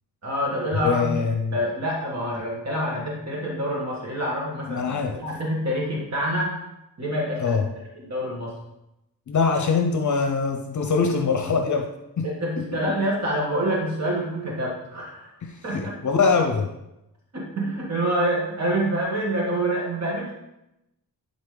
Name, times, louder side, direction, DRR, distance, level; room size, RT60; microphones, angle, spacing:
voice 1, 0.2-1.1 1.5-4.8 5.1-6.5 7.0-7.5 8.0-8.5 12.2-15.3 15.6-15.9 17.3-20.3, right 1 dB, 45° right, -3 dB, 1.6 m, -26 dB
voice 2, 0.7-1.6 4.7-5.2 7.4-7.7 9.3-11.9 12.2-12.3 12.6-13.0 15.4-16.7, left 5 dB, 55° left, 5 dB, 0.7 m, -23 dB
11.0 x 4.1 x 3.8 m, 0.90 s
wide cardioid pair, 140°, 36 cm